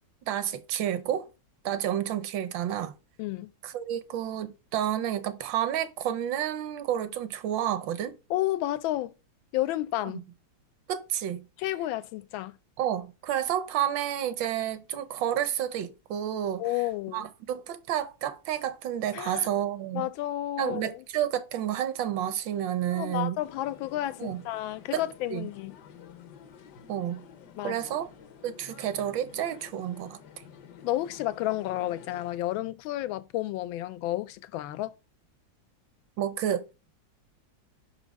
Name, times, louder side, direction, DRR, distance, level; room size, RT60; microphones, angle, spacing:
voice 1, 0.3-1.3 1.6-2.9 3.6-8.2 10.9-11.4 12.8-16.6 17.1-20.1 20.6-23.4 24.2-24.4 24.9-25.0 25.3-25.5 26.9-27.2 27.6-28.1 28.4-30.2 36.2-36.6, right 10 dB, 75° right, 1.4 m, -30 dB
voice 2, 3.2-3.5 8.3-9.1 9.5-10.2 11.6-12.5 16.6-17.3 19.1-19.5 19.9-21.0 22.9-25.7 27.6-28.0 30.8-34.9, left 15 dB, 90° left, 1.4 m, -31 dB
sound 1, 23.4-32.4, left 7 dB, 65° left, 1.3 m, -50 dB
5.5 x 4.8 x 5.1 m
omnidirectional pair, 2.1 m